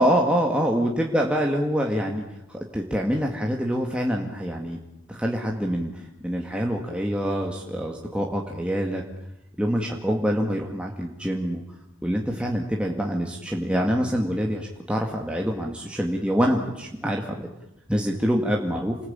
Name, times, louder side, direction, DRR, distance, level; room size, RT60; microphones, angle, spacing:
voice 1, 0.0-2.2 2.5-4.8 5.1-9.0 9.6-11.6 12.0-17.5 17.9-19.0, equal, 5° right, 0 dB, 2.1 m, -25 dB
29.0 x 20.5 x 8.9 m, 0.89 s
head